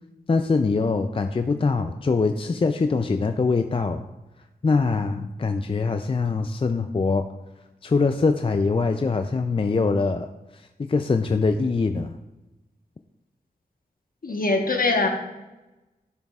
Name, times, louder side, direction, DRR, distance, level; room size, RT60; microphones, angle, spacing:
voice 1, 0.3-4.0 4.6-7.3 7.8-10.3 10.5-12.2, left 4 dB, 35° left, 7 dB, 0.4 m, -23 dB
voice 2, 14.2-15.1, left 3 dB, 60° left, 3 dB, 1.2 m, -22 dB
10.0 x 6.4 x 2.4 m, 1.0 s
cardioid pair, 45°, 16 cm